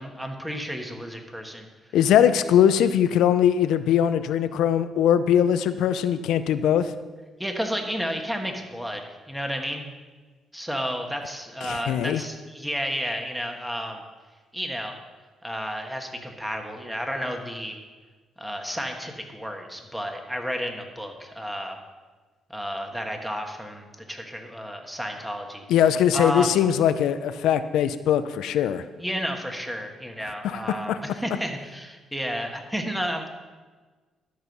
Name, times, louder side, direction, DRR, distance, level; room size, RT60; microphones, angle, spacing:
voice 1, 0.0-1.7 7.4-9.9 10.5-14.0 14.5-15.0 15.4-17.8 18.4-21.8 22.5-25.6 26.1-26.5 29.0-33.3, equal, 5° right, 3 dB, 1.5 m, -32 dB
voice 2, 1.9-6.9 11.6-12.2 25.7-28.8 30.4-31.0, left 9 dB, 85° left, 12 dB, 0.5 m, -21 dB
12.5 x 6.3 x 5.4 m, 1.4 s
cardioid pair, 90°, 0 cm